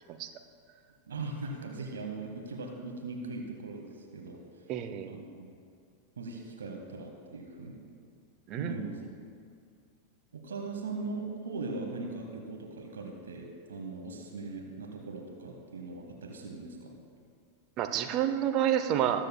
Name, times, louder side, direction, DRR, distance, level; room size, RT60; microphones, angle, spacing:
voice 1, 1.1-4.4 5.0-5.5 6.2-7.8 8.6-9.0 10.3-17.0, right 3 dB, 65° right, 2 dB, 1.0 m, -39 dB
voice 2, 4.7-5.2 8.5-8.8 17.8-19.3, right 10 dB, 35° right, 8 dB, 0.6 m, -29 dB
20.0 x 7.6 x 2.2 m, 2.3 s
figure-of-eight pair, 90°, 0 cm